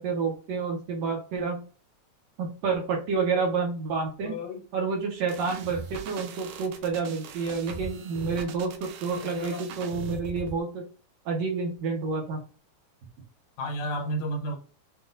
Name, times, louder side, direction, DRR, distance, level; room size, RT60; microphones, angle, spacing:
voice 1, 0.0-1.6 2.4-4.3 4.7-10.8 11.3-12.4, right 4 dB, 70° right, 2.1 m, -29 dB
voice 2, 4.2-4.6 9.2-9.9 13.6-14.6, equal, 75° left, 2.0 m, -33 dB
sound 1, 5.3-10.6, right 6 dB, 85° right, 2.1 m, -40 dB
5.9 x 2.4 x 2.6 m
omnidirectional pair, 3.3 m